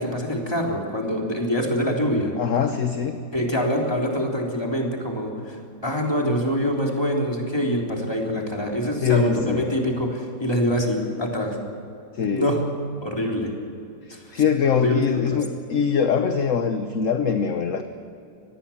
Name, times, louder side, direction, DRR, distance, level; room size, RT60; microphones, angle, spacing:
voice 1, 0.0-2.3 3.3-11.5 12.3-12.6 13.0-13.5 14.1-14.4 14.8-15.4, equal, 15° left, 0 dB, 3.4 m, -25 dB
voice 2, 2.4-3.2 9.0-9.7 12.2-12.5 14.3-17.8, left 7 dB, 50° left, 7 dB, 1.2 m, -23 dB
25.0 x 19.0 x 7.2 m, 2.6 s
omnidirectional pair, 1.9 m